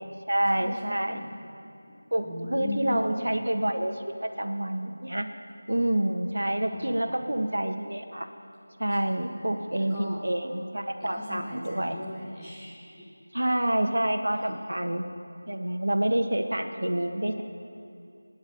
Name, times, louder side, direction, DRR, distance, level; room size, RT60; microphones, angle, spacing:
voice 1, 0.0-1.2 2.1-5.3 5.7-8.3 8.8-12.0 13.3-15.0 15.5-17.4, right 1 dB, 85° right, 6 dB, 1.5 m, -28 dB
voice 2, 0.5-1.3 1.9-2.0 2.2-3.1 6.7-7.0 8.9-10.2 11.0-13.1, left 2 dB, 5° left, -11 dB, 1.5 m, -39 dB
26.0 x 10.5 x 5.2 m, 2.6 s
figure-of-eight pair, 175°, 0 cm